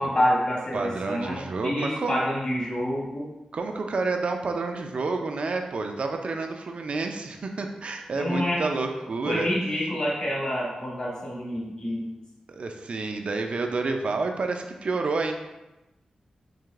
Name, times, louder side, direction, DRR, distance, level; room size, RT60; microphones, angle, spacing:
voice 1, 0.0-3.3 8.1-8.6 9.2-12.1, equal, 40° left, -5 dB, 1.4 m, -27 dB
voice 2, 0.7-2.2 3.5-9.5 12.5-15.3, right 3 dB, 55° right, 4 dB, 0.4 m, -29 dB
4.7 x 2.5 x 2.4 m, 1.0 s
wide cardioid pair, 90°, 2 cm